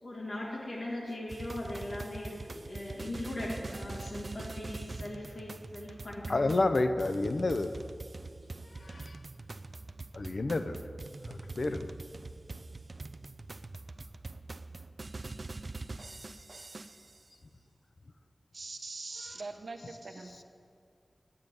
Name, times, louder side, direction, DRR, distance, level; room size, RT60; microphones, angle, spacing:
voice 1, 0.0-6.6, left 1 dB, 90° left, -5 dB, 2.3 m, -39 dB
sound 1, 1.3-17.2, right 3 dB, 60° right, 0.4 m, -44 dB
voice 2, 6.3-7.7 8.7-9.2 10.1-10.8 11.3-11.9 19.2-19.4 19.8-19.9, left 2 dB, 70° left, 9 dB, 0.7 m, -30 dB
voice 3, 18.5-20.4, right 3 dB, 80° right, 5 dB, 1.0 m, -42 dB
8.7 x 8.6 x 9.4 m, 2.3 s
cardioid pair, 45°, 0 cm